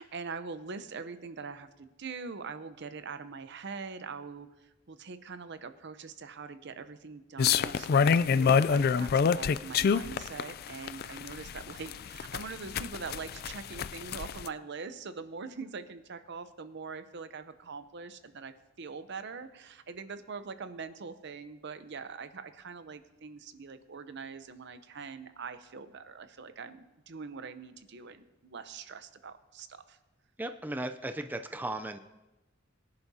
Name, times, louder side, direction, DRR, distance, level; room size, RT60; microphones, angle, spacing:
voice 1, 0.0-30.0, right 5 dB, 60° right, 10 dB, 0.7 m, -43 dB
sound 1, 7.4-14.5, left 6 dB, 50° left, 0.4 m, -26 dB
voice 2, 30.4-32.0, right 1 dB, 10° right, 8 dB, 0.5 m, -36 dB
22.5 x 10.5 x 2.8 m, 1.1 s
head